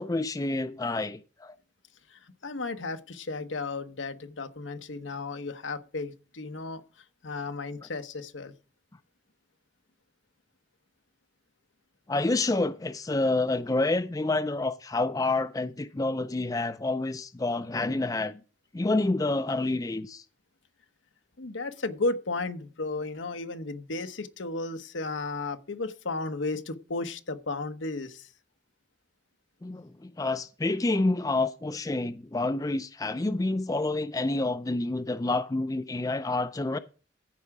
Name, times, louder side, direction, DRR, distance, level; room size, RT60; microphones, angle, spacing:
voice 1, 0.0-1.5 12.1-18.4 18.7-20.2 29.6-36.8, left 2 dB, 20° left, 0.4 m, -28 dB
voice 2, 2.1-8.5 21.4-28.3, left 3 dB, 90° left, 1.0 m, -34 dB
14.5 x 4.9 x 4.8 m
head